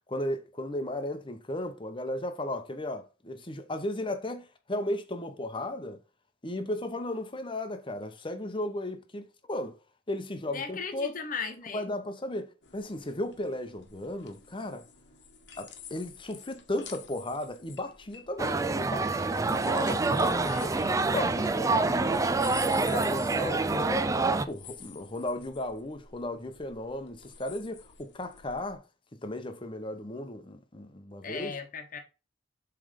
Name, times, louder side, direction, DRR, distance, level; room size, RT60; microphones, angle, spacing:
voice 1, 0.1-6.0 6.4-9.8 10.1-11.1 11.7-14.9 15.6-20.8 21.1-22.2 22.7-24.1 24.5-28.8 29.2-31.5, left 1 dB, 30° left, 0.9 m, -35 dB
voice 2, 10.5-11.9 20.4-21.0 31.2-32.0, left 5 dB, 50° left, 1.1 m, -37 dB
sound 1, 12.6-28.8, left 7 dB, 70° left, 1.2 m, -50 dB
sound 2, 18.4-24.5, right 3 dB, 20° right, 0.4 m, -27 dB
7.4 x 3.4 x 5.1 m
head